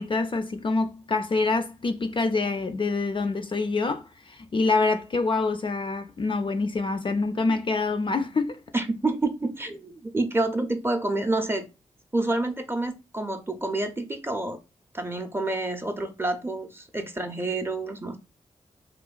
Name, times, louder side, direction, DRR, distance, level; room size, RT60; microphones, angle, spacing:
voice 1, 0.0-8.6, left 3 dB, 40° left, 0.4 m, -26 dB
voice 2, 8.7-11.7 12.1-14.6 14.9-18.2, right 2 dB, 15° right, 0.5 m, -28 dB
2.9 x 2.2 x 2.4 m
cardioid pair, 45°, 14 cm